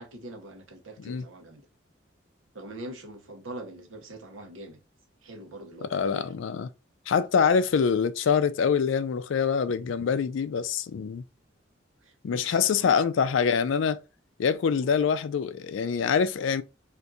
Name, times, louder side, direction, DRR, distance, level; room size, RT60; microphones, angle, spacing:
voice 1, 0.0-1.7 2.5-4.8 5.2-6.3 12.0-13.0 14.7-14.9, right 1 dB, 80° right, 0.8 m, -43 dB
voice 2, 5.9-6.7 7.1-11.2 12.2-14.0 14.4-16.6, left 6 dB, 70° left, 0.3 m, -25 dB
2.5 x 2.4 x 3.9 m
head